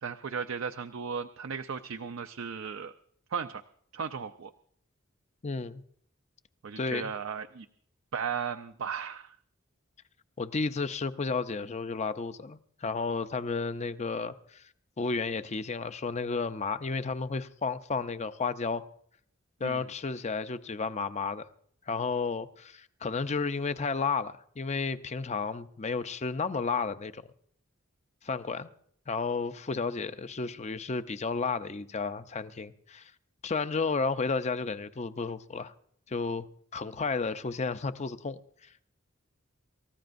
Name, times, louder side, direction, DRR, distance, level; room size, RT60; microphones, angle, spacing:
voice 1, 0.0-2.9 3.3-3.6 3.9-4.5 6.6-7.7 8.1-9.4 19.6-19.9, right 6 dB, 75° right, 0.5 m, -36 dB
voice 2, 5.4-5.8 6.8-7.1 10.4-14.6 15.0-18.8 19.6-21.5 21.9-27.2 28.2-28.7 29.1-33.1 33.4-35.7 36.1-36.5 36.7-38.7, left 4 dB, 35° left, 0.6 m, -32 dB
28.0 x 14.5 x 2.6 m
head